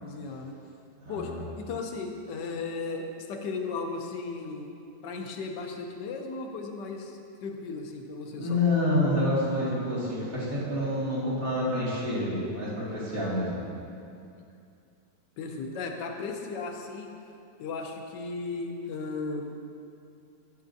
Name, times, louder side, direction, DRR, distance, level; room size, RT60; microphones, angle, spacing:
voice 1, 0.0-0.5 1.1-4.7 5.0-8.6 15.4-17.1 17.6-19.5, left 4 dB, 90° left, 3 dB, 1.4 m, -36 dB
voice 2, 1.0-1.4 8.4-13.5, left 1 dB, 55° right, -8 dB, 2.5 m, -28 dB
11.5 x 7.2 x 2.7 m, 2.6 s
omnidirectional pair, 1.8 m